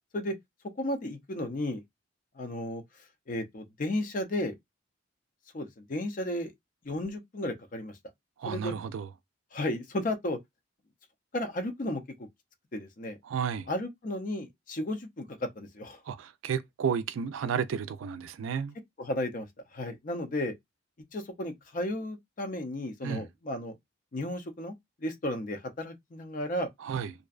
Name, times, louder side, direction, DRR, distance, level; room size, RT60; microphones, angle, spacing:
voice 1, 0.8-1.8 2.4-2.8 3.3-4.5 5.5-6.5 6.8-7.9 8.4-8.7 9.5-10.4 11.3-12.3 12.7-13.2 13.7-16.0 19.0-19.5 19.7-20.5 21.1-23.7 24.1-26.7, left 1 dB, 45° left, 0.5 m, -33 dB
voice 2, 8.4-9.1 13.2-13.7 16.1-18.8 23.0-23.3 26.8-27.1, right 7 dB, 90° right, 0.4 m, -32 dB
2.5 x 2.1 x 2.4 m
head